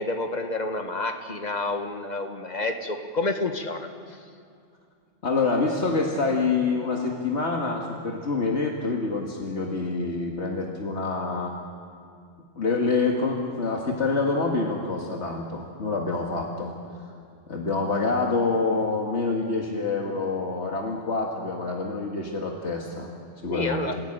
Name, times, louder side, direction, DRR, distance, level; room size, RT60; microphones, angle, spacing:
voice 1, 0.0-3.9 23.5-23.9, left 2 dB, 40° left, 5 dB, 1.7 m, -29 dB
voice 2, 5.2-11.5 12.6-16.7 17.5-23.1 23.4-23.9, left 3 dB, 85° left, 0 dB, 2.1 m, -26 dB
28.0 x 16.5 x 8.8 m, 2.3 s
omnidirectional pair, 1.1 m